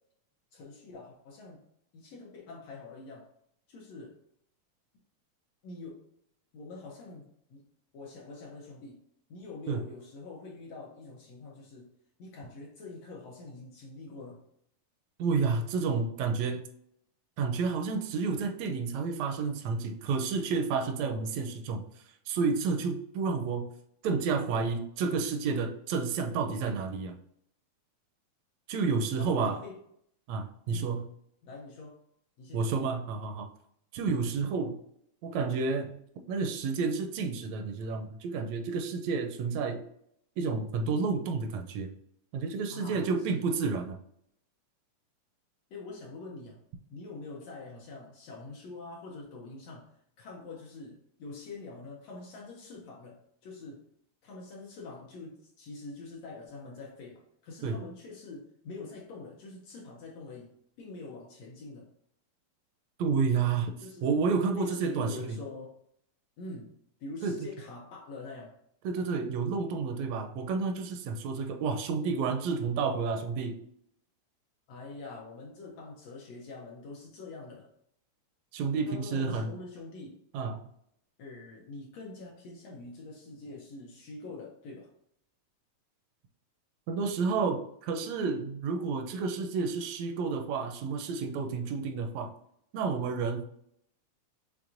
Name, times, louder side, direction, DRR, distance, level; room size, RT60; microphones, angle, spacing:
voice 1, 0.5-1.6 1.9-3.3 3.7-4.1 5.6-6.0 6.5-7.6 7.9-9.0 9.3-11.9 12.2-14.4 29.2-29.8 30.7-31.0 31.4-32.0 32.4-32.9 42.7-43.4 45.7-46.6 46.9-49.9 50.2-53.8 54.2-60.5 60.8-61.9 63.8-64.2 64.5-65.7 66.4-66.7 67.0-68.5 74.7-77.7 78.8-80.2 81.2-84.9, left 3 dB, 75° left, -1 dB, 1.7 m, -45 dB
voice 2, 15.2-16.6 17.4-21.8 22.3-23.7 24.0-27.1 28.7-29.6 30.3-31.1 32.5-33.5 33.9-34.8 35.2-36.0 36.3-39.8 40.4-41.9 42.3-44.0 57.6-57.8 63.0-63.7 64.0-65.4 67.2-67.4 68.8-73.6 78.5-79.5 80.3-80.6 86.9-92.3 92.7-93.4, right 4 dB, 80° right, 5 dB, 1.6 m, -30 dB
6.1 x 3.4 x 2.5 m, 0.71 s
omnidirectional pair, 3.4 m